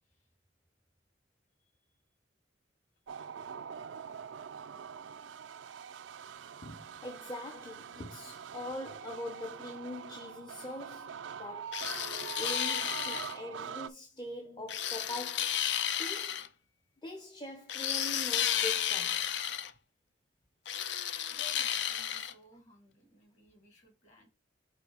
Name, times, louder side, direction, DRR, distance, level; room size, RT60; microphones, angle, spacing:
sound 1, 3.1-13.9, right 7 dB, 85° right, 0.4 m, -44 dB
voice 1, 6.6-11.8 12.4-15.6 16.0-16.4 17.0-19.3, left 1 dB, 25° left, 0.8 m, -43 dB
sound 2, 11.7-13.4 14.7-16.5 17.7-19.7 20.7-22.3, left 10 dB, 70° left, 0.5 m, -33 dB
voice 2, 21.3-24.3, equal, 40° left, 3.1 m, -59 dB
5.6 x 3.6 x 4.9 m
head